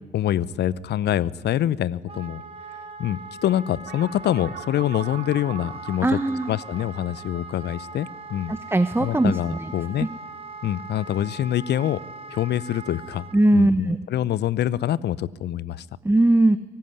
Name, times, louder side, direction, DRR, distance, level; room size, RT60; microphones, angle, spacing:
voice 1, 0.1-2.4 3.0-6.2 6.5-8.6 9.0-10.1 10.6-12.0 12.3-13.3 13.5-15.9, left 12 dB, 60° left, 21 dB, 0.8 m, -25 dB
Wind instrument woodwind instrument, 2.1-13.4, right 3 dB, 30° right, 2.7 m, -40 dB
sound 1, 3.9-8.7, right 8 dB, 55° right, 4.6 m, -42 dB
voice 2, 6.0-6.5 8.5-9.7 10.0-10.1 13.3-14.0 16.0-16.6, right 1 dB, 10° right, 12 dB, 1.1 m, -20 dB
23.5 x 19.0 x 9.8 m, 1.3 s
hypercardioid pair, 50°, 19 cm